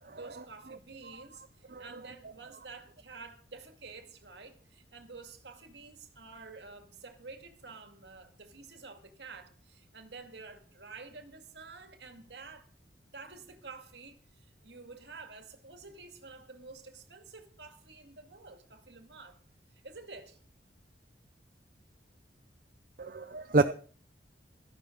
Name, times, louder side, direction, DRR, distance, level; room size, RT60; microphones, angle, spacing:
voice 1, 0.1-12.7 13.1-19.4 19.8-20.4, right 4 dB, 70° right, 2.3 m, -49 dB
voice 2, 23.0-23.7, right 2 dB, 50° right, 0.7 m, -28 dB
16.0 x 13.0 x 3.9 m
head